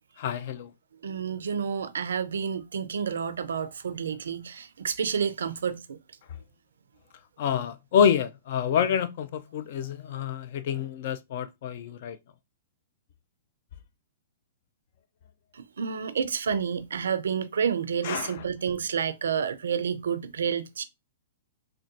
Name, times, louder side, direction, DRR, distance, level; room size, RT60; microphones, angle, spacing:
voice 1, 0.2-0.7 7.4-12.2 18.0-18.4, left 8 dB, 55° left, 0.4 m, -27 dB
voice 2, 1.0-6.0 15.5-20.8, right 7 dB, 75° right, 0.4 m, -29 dB
3.7 x 2.2 x 2.5 m
hypercardioid pair, 120°, 0 cm